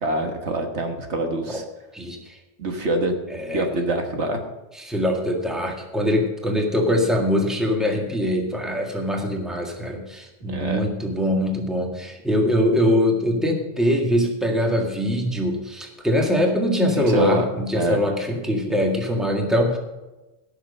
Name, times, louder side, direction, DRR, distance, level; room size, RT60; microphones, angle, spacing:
voice 1, 0.0-1.6 2.6-3.1 3.5-4.4 10.5-10.8 17.0-17.5 17.8-18.0, right 1 dB, 75° right, 4 dB, 1.7 m, -25 dB
voice 2, 1.9-2.4 3.3-3.7 4.8-19.8, equal, ahead, 1 dB, 1.7 m, -23 dB
16.0 x 6.6 x 5.4 m, 1.1 s
omnidirectional pair, 1.2 m